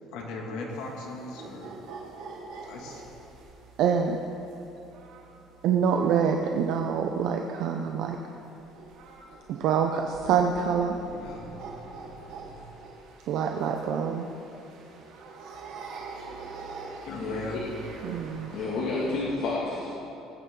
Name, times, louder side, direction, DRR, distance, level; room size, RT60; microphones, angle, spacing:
voice 1, 0.0-1.9 2.7-3.0 11.0-12.7 17.0-17.6, left 2 dB, 75° left, -1 dB, 2.4 m, -40 dB
sound 1, 0.7-19.3, right 4 dB, 80° right, 2.9 m, -45 dB
voice 2, 3.8-4.2 5.6-8.2 9.5-10.9 13.3-14.3 18.0-18.5, right 7 dB, 65° right, 3 dB, 0.7 m, -26 dB
voice 3, 17.1-17.6 18.5-19.9, left 3 dB, 60° left, -6 dB, 2.2 m, -30 dB
19.5 x 9.6 x 3.9 m, 2.9 s
cardioid pair, 140°, 0 cm